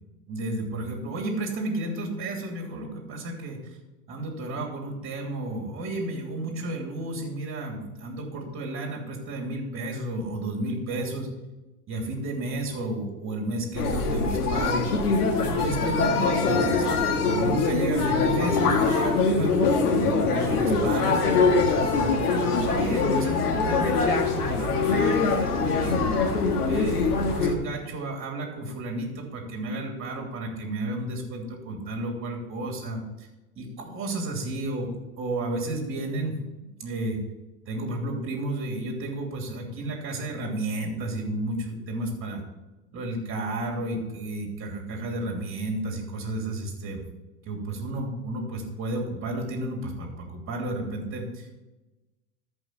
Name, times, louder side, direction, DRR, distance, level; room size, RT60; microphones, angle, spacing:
voice 1, 0.3-3.6 4.1-11.3 11.9-14.9 15.4-21.3 21.9-26.0 26.6-33.3 33.5-34.9 35.2-37.2 37.7-42.4 42.9-47.0 47.4-51.6, right 2 dB, 30° right, 1 dB, 2.9 m, -32 dB
sound 1, 13.7-27.5, left 4 dB, 80° left, 1.7 m, -23 dB
13.5 x 5.4 x 4.5 m, 1.1 s
hypercardioid pair, 110°, 45 cm